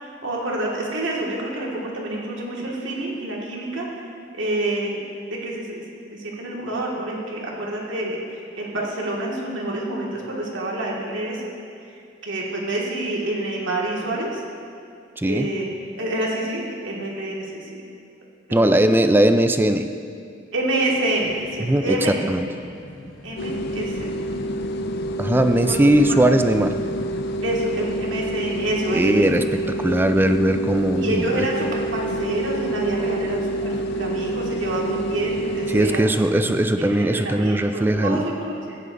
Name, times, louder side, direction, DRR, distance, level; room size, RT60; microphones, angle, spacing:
voice 1, 0.0-3.9 4.3-5.0 5.3-5.8 6.1-11.4 11.9-12.0 12.2-14.4 15.2-17.7 18.5-18.7 20.5-22.2 23.2-24.1 25.7-25.8 27.4-29.2 31.0-36.2 36.8-38.8, right 1 dB, 80° right, -3 dB, 1.8 m, -27 dB
voice 2, 15.2-15.5 18.5-19.9 21.6-22.5 25.2-26.8 28.9-31.5 35.7-38.3, right 1 dB, 10° right, 8 dB, 0.4 m, -19 dB
sound 1, 21.2-27.4, left 1 dB, 80° left, 0.9 m, -43 dB
sound 2, 23.4-36.0, right 1 dB, 60° left, 0.4 m, -27 dB
15.0 x 9.9 x 2.6 m, 2.4 s
head